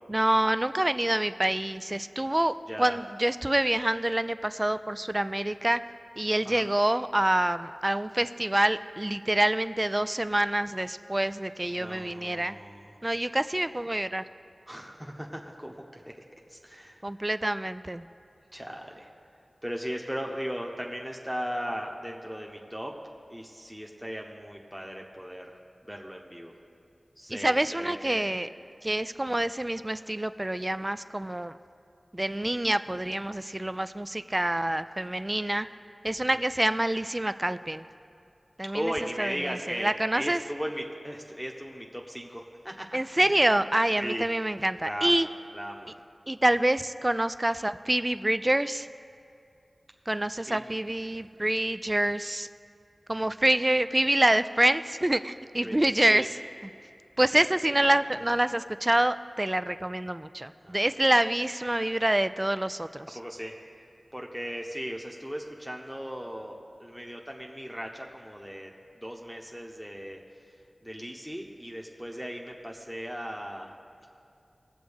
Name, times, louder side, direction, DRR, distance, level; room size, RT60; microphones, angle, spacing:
voice 1, 0.1-5.8 6.2-12.5 13.0-14.2 17.0-18.0 27.3-28.5 28.8-31.5 32.1-35.7 36.0-37.8 38.6-38.9 39.2-40.4 42.9-45.3 46.3-48.9 50.1-52.5 53.1-56.2 57.2-63.1, right 1 dB, 25° right, 12 dB, 0.3 m, -26 dB
voice 2, 2.7-3.0 6.4-6.6 11.7-12.9 14.7-16.1 16.5-17.0 18.5-19.1 19.6-22.9 23.3-25.5 25.8-26.5 27.2-28.3 36.2-36.3 38.7-43.4 44.0-44.3 44.8-45.9 50.4-50.8 55.6-56.3 57.7-58.3 60.6-61.2 63.1-63.5 64.1-70.2 70.8-73.7, equal, ahead, -1 dB, 0.9 m, -37 dB
19.0 x 7.5 x 3.5 m, 2.5 s
wide cardioid pair, 60°, 0 cm